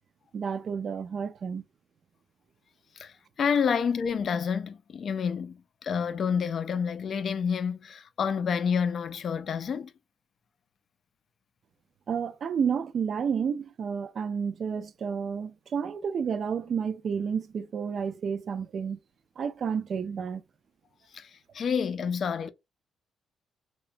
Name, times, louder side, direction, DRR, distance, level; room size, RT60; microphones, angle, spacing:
voice 1, 0.3-1.6 12.1-19.0 19.4-20.4, right 6 dB, 55° right, 0.3 m, -30 dB
voice 2, 3.0-9.9 21.1-22.5, left 6 dB, 55° left, 0.3 m, -29 dB
2.8 x 2.2 x 2.5 m
cardioid pair, 90°, 0 cm